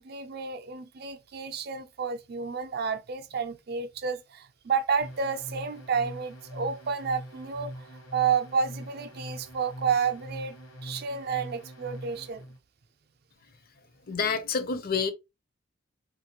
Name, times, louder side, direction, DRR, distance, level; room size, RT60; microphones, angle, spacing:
voice 1, 0.0-10.6 10.8-12.4, right 6 dB, 50° right, 0.5 m, -30 dB
sound 1, 5.0-12.6, equal, 65° left, 0.9 m, -43 dB
voice 2, 14.1-15.1, left 5 dB, 45° left, 0.5 m, -28 dB
3.4 x 2.5 x 2.8 m
head